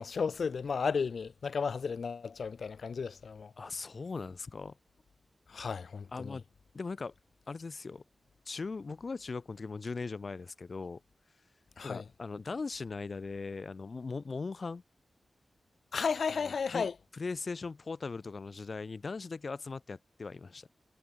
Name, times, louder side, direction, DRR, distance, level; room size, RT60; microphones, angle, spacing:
voice 1, 0.0-3.5 5.5-6.4 11.8-12.0 15.9-16.9, left 5 dB, 75° left, 0.6 m, -33 dB
voice 2, 3.6-4.8 6.1-6.4 6.7-7.1 7.5-8.0 8.5-11.0 11.8-14.8 16.4-16.9 17.1-20.7, left 4 dB, 50° left, 1.8 m, -39 dB
wide cardioid pair, 90°, 0 cm